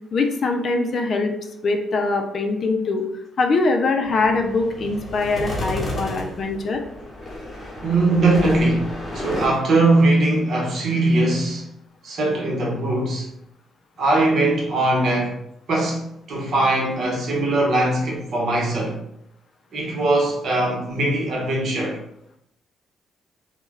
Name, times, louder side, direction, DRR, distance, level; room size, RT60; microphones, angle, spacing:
voice 1, 0.1-1.3 1.6-3.0 3.4-6.8, left 3 dB, 50° left, 0.4 m, -22 dB
sound 1, 4.0-9.5, left 1 dB, 25° left, 1.0 m, -32 dB
voice 2, 7.8-11.7 12.0-13.3 14.0-15.4 15.7-16.0 16.3-19.0 19.7-22.0, right 2 dB, 60° right, 0.8 m, -20 dB
2.2 x 2.1 x 3.2 m
cardioid pair, 90°, 0 cm